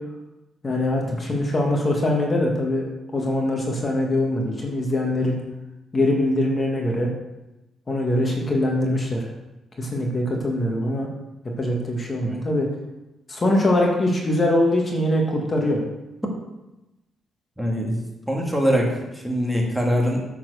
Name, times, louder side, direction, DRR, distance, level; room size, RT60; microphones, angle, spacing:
voice 1, 0.6-2.8 3.1-5.4 5.9-7.1 7.9-9.2 9.8-11.1 11.6-12.7 13.3-15.8, left 1 dB, 30° left, 0 dB, 1.9 m, -22 dB
voice 2, 17.6-20.2, equal, 5° right, -1 dB, 1.9 m, -23 dB
8.9 x 4.6 x 6.5 m, 0.97 s
cardioid pair, 95°, 0 cm